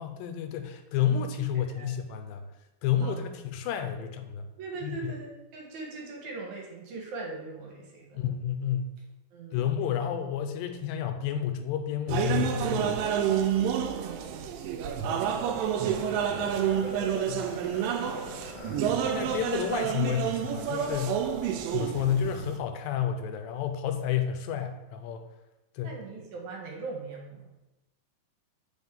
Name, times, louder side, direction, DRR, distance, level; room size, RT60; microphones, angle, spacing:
voice 1, 0.0-2.4 2.8-4.5 4.8-5.1 8.1-8.8 9.5-13.0 17.3-17.4 19.1-21.2 21.7-25.3 25.8-26.0, left 9 dB, 90° left, 7 dB, 2.4 m, -30 dB
voice 2, 4.6-8.2 9.3-9.7 13.9-18.5 25.8-27.5, right 3 dB, 65° right, 0 dB, 2.2 m, -41 dB
sound 1, 12.1-22.6, right 9 dB, 85° right, 2.2 m, -29 dB
sound 2, 15.8-22.2, left 3 dB, 75° left, 1.5 m, -45 dB
8.1 x 5.0 x 3.6 m, 0.97 s
omnidirectional pair, 4.0 m